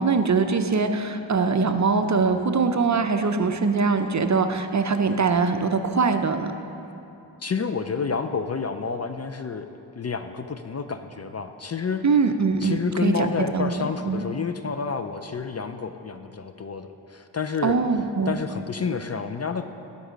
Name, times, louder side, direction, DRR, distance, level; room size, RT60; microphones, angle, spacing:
voice 1, 0.0-6.5 12.0-13.7 14.1-14.3 17.6-18.3, right 4 dB, 40° right, 8 dB, 0.5 m, -22 dB
voice 2, 7.4-9.7 10.0-12.1 12.6-17.8 18.3-19.7, left 5 dB, 35° left, 8 dB, 0.4 m, -29 dB
12.5 x 5.4 x 5.1 m, 2.8 s
cardioid pair, 55°, 45 cm